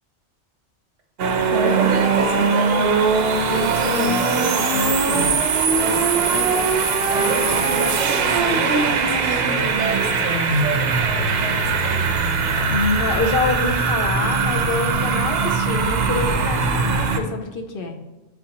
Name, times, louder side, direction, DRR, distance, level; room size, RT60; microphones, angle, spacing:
sound 1, 1.2-17.2, right 4 dB, 60° right, 0.8 m, -20 dB
voice 1, 1.5-3.0 5.8-12.0, right 3 dB, 90° right, 2 dB, 1.3 m, -29 dB
voice 2, 3.5-5.3 12.7-18.0, left 3 dB, 60° left, 4 dB, 0.8 m, -26 dB
9.2 x 3.8 x 2.9 m, 1.1 s
omnidirectional pair, 1.2 m